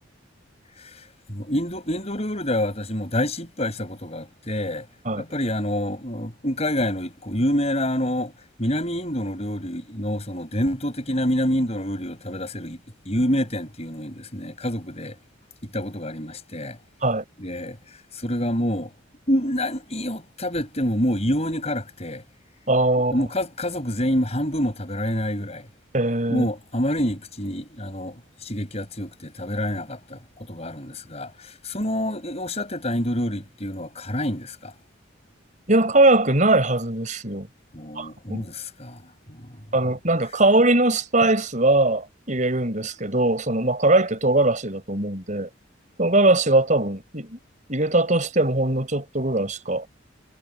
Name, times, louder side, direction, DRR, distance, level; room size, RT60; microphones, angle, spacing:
voice 1, 1.3-4.9 5.1-8.3 8.6-12.8 13.0-15.1 15.6-16.8 17.4-17.8 18.2-18.9 19.3-22.2 23.1-25.7 26.3-30.2 30.5-34.7 37.7-39.0 39.3-39.6, equal, 35° left, 6.5 m, -27 dB
voice 2, 22.7-23.2 25.9-26.5 35.7-37.5 37.9-38.4 39.7-45.5 46.0-47.4 47.7-49.9, right 2 dB, 40° right, 5.1 m, -21 dB
head